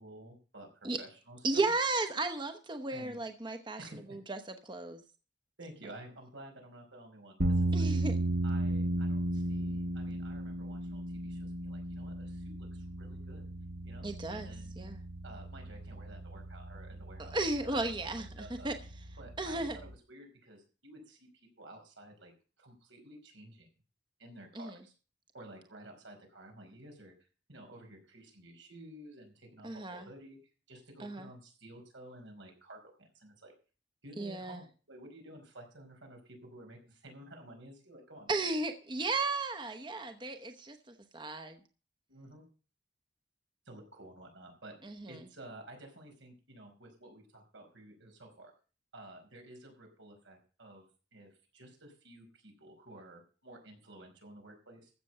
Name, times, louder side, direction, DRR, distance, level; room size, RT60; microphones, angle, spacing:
voice 1, 0.0-1.7 2.9-3.2 3.8-4.2 5.6-7.9 8.4-13.4 13.8-14.8 15.2-17.4 17.7-18.7 19.2-21.3 21.6-22.3 22.6-23.7 24.2-24.9 25.3-30.4 30.7-33.5 34.0-38.3 42.1-42.5 43.7-48.5 48.9-54.9, right 1 dB, 90° right, 3 dB, 5.2 m, -52 dB
voice 2, 1.4-3.8 4.1-5.0 7.7-8.2 14.0-14.5 14.8-15.0 17.2-18.8 19.4-19.8 24.5-24.8 29.6-30.1 31.0-31.3 34.2-34.6 38.3-40.8 41.1-41.6 44.8-45.1, right 2 dB, 25° right, 7 dB, 0.9 m, -34 dB
sound 1, 7.4-19.9, right 1 dB, 65° right, 1.4 m, -35 dB
15.0 x 6.9 x 6.7 m, 0.36 s
head